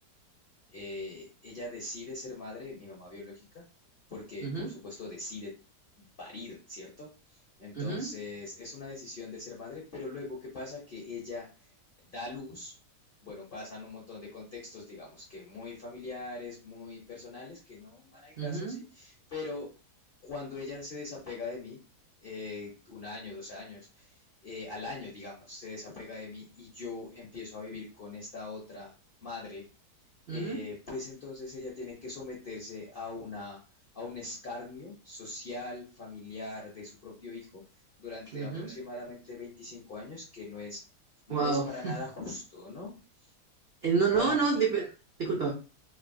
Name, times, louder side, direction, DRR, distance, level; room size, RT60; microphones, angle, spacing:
voice 1, 0.7-3.7 4.1-5.5 6.0-11.7 12.1-12.7 13.2-19.7 20.2-21.8 22.2-28.9 29.2-29.7 30.3-33.6 33.9-37.6 38.0-40.8 41.3-42.9 43.2-43.3 44.1-44.6, left 3 dB, 55° left, -4 dB, 0.6 m, -42 dB
voice 2, 7.7-8.1 18.4-18.8 30.3-30.6 38.3-38.7 41.3-42.0 43.8-44.9 45.2-45.5, right 5 dB, 70° right, -2 dB, 0.5 m, -29 dB
3.1 x 2.5 x 2.5 m, 0.34 s
omnidirectional pair, 1.8 m